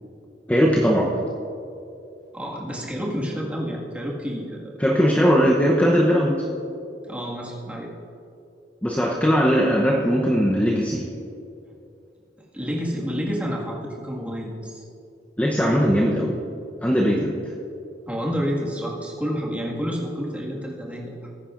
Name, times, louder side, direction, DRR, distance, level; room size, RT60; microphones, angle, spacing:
voice 1, 0.5-1.2 4.8-6.4 8.8-11.1 15.4-16.4 16.8-17.4, equal, 10° left, -2 dB, 0.7 m, -19 dB
voice 2, 2.3-4.8 7.1-7.9 12.5-14.8 18.1-21.3, equal, 10° right, -4 dB, 1.8 m, -29 dB
19.5 x 9.8 x 2.5 m, 2.7 s
head